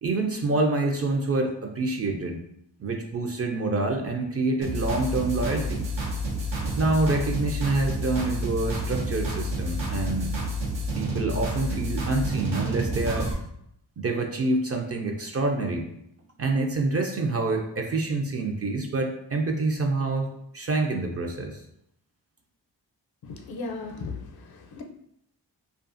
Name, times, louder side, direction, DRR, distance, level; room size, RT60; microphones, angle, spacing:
voice 1, 0.0-2.4 2.8-5.8 6.8-10.3 11.0-13.3 14.0-15.9 16.4-21.6, right 2 dB, 35° right, 2 dB, 0.4 m, -27 dB
sound 1, 4.6-13.3, equal, 85° right, 0.7 m, -29 dB
voice 2, 23.3-24.8, left 3 dB, 55° left, 3 dB, 0.6 m, -36 dB
2.4 x 2.4 x 2.5 m, 0.75 s
cardioid pair, 45°, 44 cm